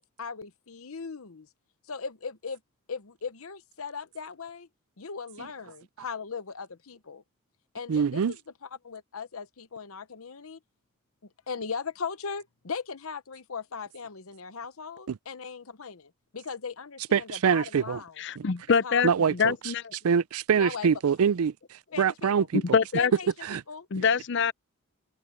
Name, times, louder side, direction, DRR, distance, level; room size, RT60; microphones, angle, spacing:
voice 1, 0.0-1.5 1.9-2.6 2.9-4.7 5.0-7.2 7.7-8.4 8.8-10.6 11.2-18.1 18.8-19.1 20.6-20.9 21.9-22.5 23.0-23.3 23.7-23.9, left 5 dB, 80° left, 0.9 m, -38 dB
voice 2, 7.9-8.3 15.1-15.2 17.1-18.0 18.4-18.5 19.0-19.7 20.0-22.8 23.4-23.6 24.0-24.1, right 7 dB, 85° right, 0.4 m, -25 dB
voice 3, 18.2-19.1 19.4-19.8 22.7-23.1 23.9-24.5, left 6 dB, 55° left, 0.6 m, -24 dB
head